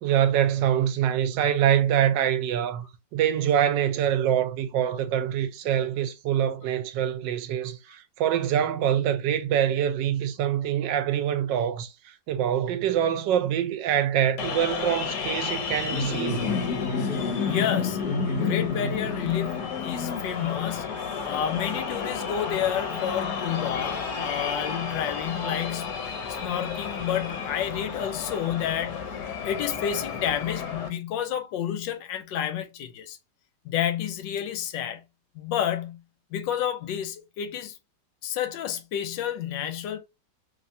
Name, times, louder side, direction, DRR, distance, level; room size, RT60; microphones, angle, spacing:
voice 1, 0.0-2.8 3.1-16.6, right 10 dB, 80° right, 1.2 m, -25 dB
sound 1, 14.4-30.9, left 5 dB, 70° left, 1.3 m, -31 dB
Wind instrument woodwind instrument, 15.3-19.8, right 2 dB, 50° left, 0.8 m, -50 dB
voice 2, 17.4-26.0 26.3-29.0 29.4-33.2 33.6-35.0 35.3-36.0 36.3-37.8 38.2-40.0, left 10 dB, 90° left, 1.3 m, -30 dB
3.3 x 3.1 x 2.6 m
omnidirectional pair, 1.9 m